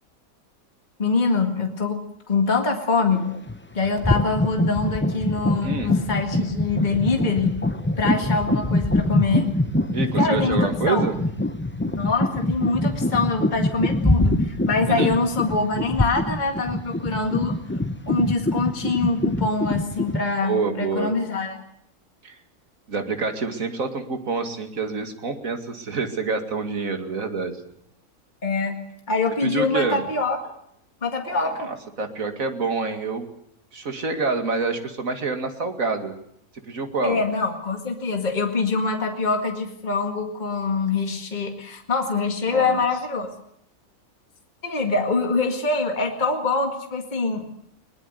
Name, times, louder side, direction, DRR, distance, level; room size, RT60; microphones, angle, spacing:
voice 1, 1.0-2.0 2.3-3.3 3.7-7.5 8.0-9.5 10.2-11.0 12.0-17.5 18.1-21.6 28.4-28.8 29.1-30.5 31.0-31.7 37.0-43.3 44.6-47.5, left 4 dB, 30° left, 3 dB, 2.2 m, -24 dB
sound 1, 3.1-3.6 3.8-20.2, left 1 dB, 10° left, 0.7 m, -24 dB
voice 2, 5.6-6.0 9.9-11.1 14.9-15.1 20.4-21.1 22.2-22.4 22.9-27.6 29.4-30.0 31.3-33.3 33.7-36.1 36.6-37.2 42.5-42.8, right 4 dB, 65° right, 6 dB, 2.7 m, -27 dB
21.5 x 20.0 x 8.0 m, 0.70 s
omnidirectional pair, 1.6 m